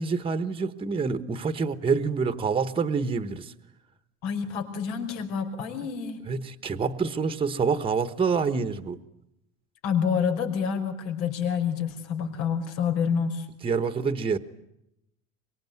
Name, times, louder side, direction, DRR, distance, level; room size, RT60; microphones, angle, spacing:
voice 1, 0.0-3.5 6.3-9.0 13.6-14.4, right 5 dB, 15° right, 12 dB, 1.1 m, -27 dB
voice 2, 4.2-6.2 9.8-13.5, left 7 dB, 85° left, 6 dB, 5.5 m, -28 dB
24.5 x 22.5 x 9.4 m, 0.84 s
cardioid pair, 150°, 36 cm